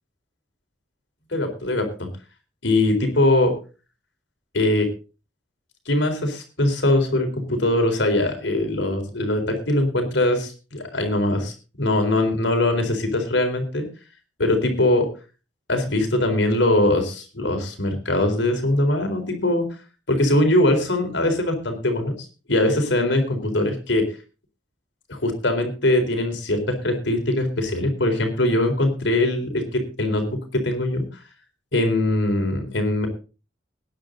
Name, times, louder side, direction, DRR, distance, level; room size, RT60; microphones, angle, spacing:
voice 1, 1.3-2.1 2.6-3.5 4.5-4.9 5.9-13.9 14.4-15.1 15.7-19.6 20.1-24.1 25.1-31.0 31.7-33.1, left 1 dB, 75° left, 5 dB, 4.1 m, -22 dB
19.0 x 10.5 x 3.9 m, 0.33 s
head